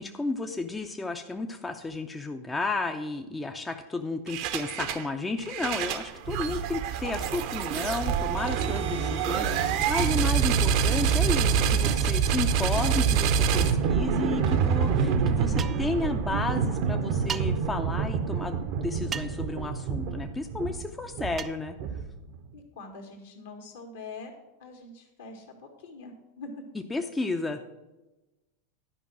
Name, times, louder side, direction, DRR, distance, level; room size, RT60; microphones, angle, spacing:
voice 1, 0.0-21.8 26.9-27.7, left 3 dB, 15° left, 5 dB, 0.6 m, -32 dB
sound 1, 4.3-5.1 5.4-22.3, right 6 dB, 50° right, 0.8 m, -26 dB
voice 2, 8.9-9.6 22.5-24.3 24.6-26.6, left 3 dB, 65° left, 2 dB, 1.9 m, -44 dB
sound 2, 15.6-15.9 17.3-17.5 19.1-19.5 21.4-21.6, right 8 dB, 25° right, 0.4 m, -35 dB
11.0 x 5.4 x 6.1 m, 1.0 s
figure-of-eight pair, 90°, 0 cm